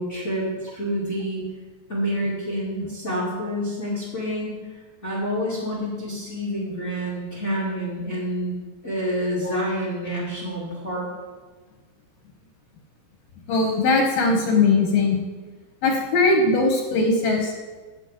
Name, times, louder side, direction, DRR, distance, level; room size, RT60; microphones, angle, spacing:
voice 1, 0.0-1.4 1.9-4.6 5.0-8.5 8.8-11.1, equal, 90° left, -7 dB, 0.6 m, -28 dB
voice 2, 13.5-15.2 15.8-17.6, left 3 dB, 70° left, 2 dB, 2.2 m, -20 dB
8.5 x 6.8 x 7.9 m, 1.4 s
omnidirectional pair, 5.5 m